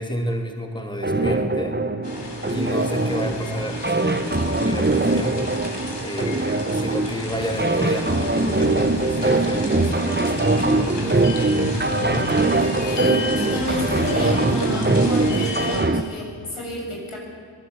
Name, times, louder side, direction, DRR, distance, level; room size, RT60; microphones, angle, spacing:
voice 1, 0.0-1.8 2.5-5.4 6.0-11.4 12.0-12.6, equal, 10° left, 3 dB, 2.8 m, -31 dB
sound 1, 1.0-16.0, right 2 dB, 20° right, 1.3 m, -22 dB
sound 2, 2.0-15.8, left 2 dB, 55° left, 4.3 m, -32 dB
voice 2, 12.5-17.2, equal, 80° left, -1 dB, 7.5 m, -30 dB
25.0 x 19.0 x 8.4 m, 2.3 s
wide cardioid pair, 55°, 49 cm